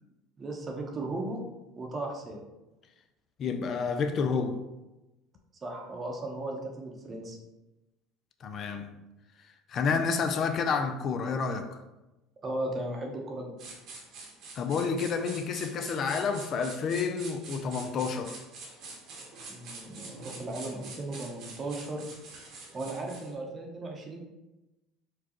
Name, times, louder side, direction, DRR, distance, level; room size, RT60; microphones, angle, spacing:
voice 1, 0.4-1.4 1.8-2.4 5.6-7.4 12.4-13.6 19.5-22.0 22.7-24.2, right 2 dB, 30° right, 1 dB, 0.8 m, -36 dB
voice 2, 3.4-4.6 8.4-8.9 9.7-11.8 14.6-18.4, left 5 dB, 45° left, 7 dB, 0.4 m, -29 dB
sound 1, 13.6-23.3, right 3 dB, 60° right, 1.1 m, -45 dB
4.6 x 2.3 x 3.0 m, 1.0 s
supercardioid pair, 90°, 0 cm